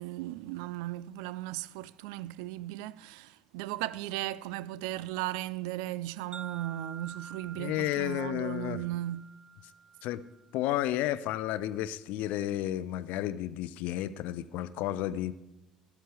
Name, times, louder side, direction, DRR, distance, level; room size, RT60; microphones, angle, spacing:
voice 1, 0.0-9.3, right 15 dB, 65° right, 0.3 m, -36 dB
Wind chime, 6.3-10.6, right 5 dB, 30° right, 0.7 m, -48 dB
voice 2, 7.6-8.8 10.0-10.2 10.5-15.3, left 13 dB, 60° left, 0.5 m, -32 dB
13.5 x 12.5 x 3.5 m
figure-of-eight pair, 55°, 3 cm